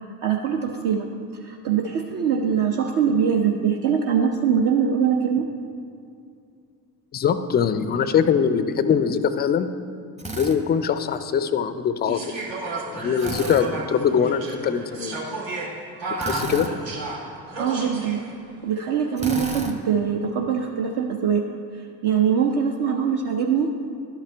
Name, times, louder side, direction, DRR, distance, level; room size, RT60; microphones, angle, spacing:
voice 1, 0.2-1.1 1.4-5.5 17.6-18.2 18.6-21.4 22.0-23.7, right 7 dB, 55° right, 2 dB, 0.7 m, -22 dB
voice 2, 7.1-9.7 10.4-12.2 12.8-15.2 16.2-16.7, left 7 dB, 25° left, 11 dB, 0.3 m, -22 dB
Drill, 10.2-10.6 13.2-13.7 16.2-16.7 19.2-19.7, right 1 dB, 15° right, 0.8 m, -31 dB
sound 1, 12.1-18.3 19.1-19.5, right 2 dB, 70° right, 1.6 m, -33 dB
11.0 x 5.7 x 3.4 m, 2.4 s
hypercardioid pair, 65°, 48 cm